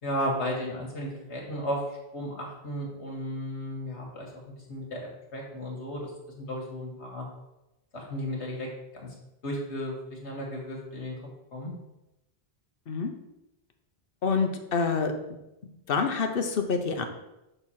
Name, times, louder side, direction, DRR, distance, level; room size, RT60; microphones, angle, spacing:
voice 1, 0.0-1.8 2.1-4.3 4.7-6.1 6.4-7.3 7.9-8.7 8.9-9.1 9.4-11.2 11.5-11.7, equal, 85° left, -2 dB, 1.9 m, -34 dB
voice 2, 14.2-15.1 15.9-17.1, left 5 dB, 55° left, 6 dB, 1.0 m, -26 dB
6.4 x 3.9 x 5.7 m, 0.93 s
omnidirectional pair, 1.1 m